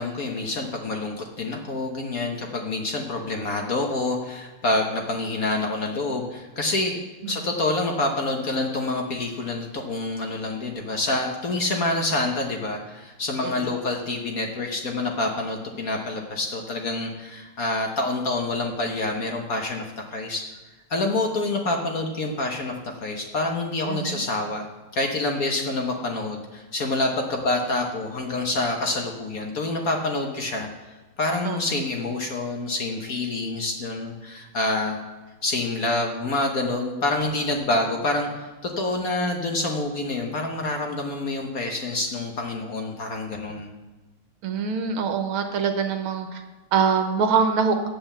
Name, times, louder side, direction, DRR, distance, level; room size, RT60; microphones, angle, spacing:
voice 1, 0.0-7.0 7.3-19.9 20.1-20.4 20.9-22.7 23.0-24.6 24.9-30.7 31.2-35.0 35.4-43.7, left 2 dB, 50° left, 2 dB, 1.2 m, -27 dB
voice 2, 23.9-24.2 31.4-31.6 44.4-46.4 46.7-47.8, right 6 dB, 75° right, 5 dB, 1.9 m, -24 dB
8.8 x 7.9 x 7.3 m, 1.2 s
omnidirectional pair, 2.4 m